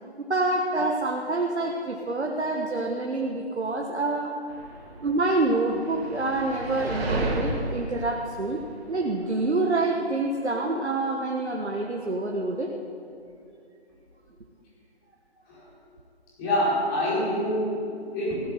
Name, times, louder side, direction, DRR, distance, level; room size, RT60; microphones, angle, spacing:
voice 1, 0.2-4.3 5.0-8.6 8.9-12.7, right 2 dB, 80° right, 0 dB, 1.5 m, -27 dB
sound 1, 4.5-9.4, right 2 dB, 65° right, 3.2 m, -32 dB
voice 2, 16.4-18.3, left 1 dB, 20° left, -7 dB, 4.9 m, -26 dB
16.5 x 9.9 x 7.8 m, 2.6 s
figure-of-eight pair, 155°, 33 cm